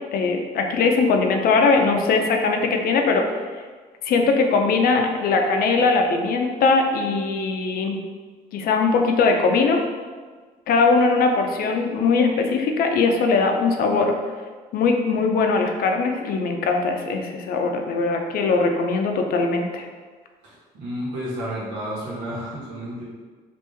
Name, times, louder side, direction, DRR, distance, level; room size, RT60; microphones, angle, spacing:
voice 1, 0.1-3.4 4.0-8.0 8.5-9.8 10.7-14.2 14.7-19.9, left 4 dB, 60° left, 3 dB, 0.5 m, -20 dB
voice 2, 20.4-23.0, equal, 85° right, -6 dB, 1.2 m, -31 dB
3.0 x 2.6 x 3.3 m, 1.5 s
cardioid pair, 110°, 17 cm